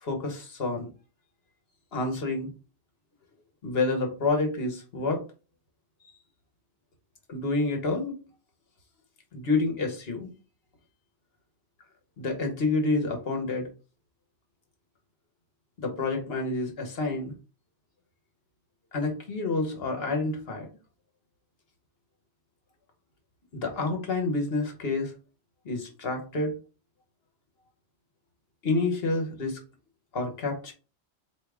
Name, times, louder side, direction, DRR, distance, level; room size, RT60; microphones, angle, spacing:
voice 1, 0.0-0.9 1.9-2.5 3.6-5.2 7.3-8.1 9.3-10.3 12.2-13.7 15.8-17.3 18.9-20.7 23.5-25.1 25.6-26.5 28.6-29.6 30.1-30.7, left 3 dB, 65° left, 3 dB, 1.3 m, -28 dB
4.6 x 2.8 x 3.4 m, 0.33 s
omnidirectional pair, 1.1 m